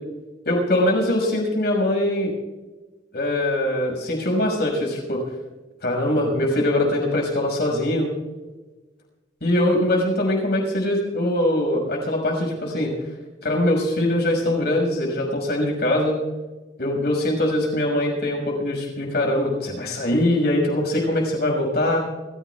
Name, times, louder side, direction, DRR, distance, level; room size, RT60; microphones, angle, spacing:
voice 1, 0.5-2.3 3.1-5.2 5.8-8.1 9.4-12.9 13.4-16.2 16.8-22.0, left 1 dB, 65° left, 1 dB, 5.8 m, -22 dB
28.5 x 15.0 x 2.4 m, 1.2 s
head